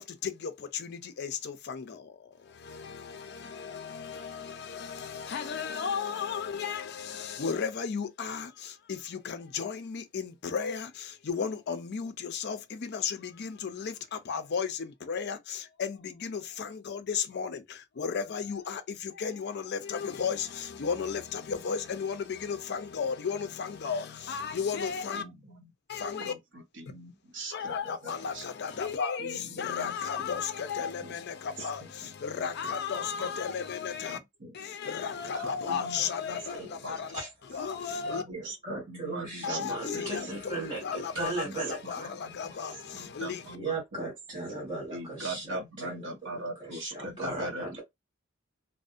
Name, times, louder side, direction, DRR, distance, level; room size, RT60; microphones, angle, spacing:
voice 1, 0.0-25.2 25.9-26.3 27.5-34.2 34.5-38.2 39.4-43.6, left 6 dB, 55° left, 0.4 m, -34 dB
voice 2, 25.1-25.7 26.2-26.4 26.8-28.4 29.2-30.3 31.0-31.1 33.2-33.3 34.1-34.5 35.3-36.4 36.8-36.9 38.1-40.0 41.2-41.6 41.8-42.6 42.9-44.0 44.9-47.8, right 1 dB, 60° right, 0.7 m, -41 dB
voice 3, 36.5-37.3 38.3-42.1 43.5-47.8, right 2 dB, 25° right, 1.4 m, -37 dB
2.6 x 2.0 x 2.4 m
head